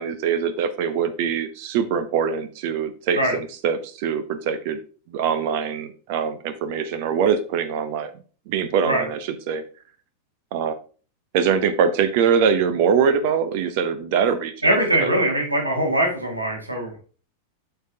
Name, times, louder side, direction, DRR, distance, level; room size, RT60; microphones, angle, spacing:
voice 1, 0.0-4.8 5.1-8.1 8.5-9.6 10.5-10.7 11.3-14.7 15.0-15.1, right 7 dB, 50° right, 11 dB, 0.9 m, -23 dB
voice 2, 14.6-16.9, right 1 dB, 80° right, 1 dB, 2.1 m, -21 dB
7.9 x 6.9 x 2.8 m, 0.38 s
figure-of-eight pair, 90°, 0 cm